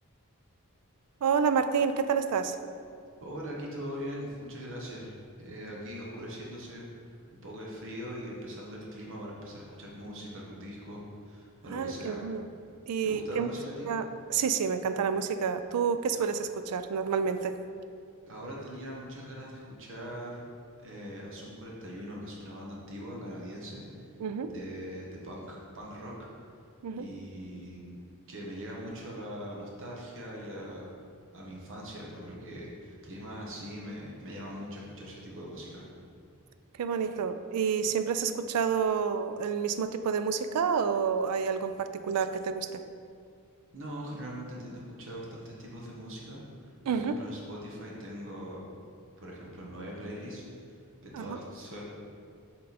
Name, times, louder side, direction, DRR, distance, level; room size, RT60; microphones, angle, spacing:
voice 1, 1.2-2.6 11.7-12.5 12.9-13.5 13.9-14.0 14.3-17.6 24.2-24.5 26.8-27.1 36.8-42.8 46.9-47.1 51.1-51.4, right 6 dB, 90° right, 10 dB, 0.4 m, -29 dB
voice 2, 3.2-6.9 7.4-11.0 11.3-12.2 13.0-13.9 18.2-20.4 20.8-23.8 24.4-26.1 27.0-27.9 28.3-30.9 31.3-35.8 43.7-48.6 49.2-50.4 51.0-51.8, equal, 60° right, -3 dB, 1.1 m, -41 dB
6.5 x 3.8 x 4.1 m, 2.3 s
head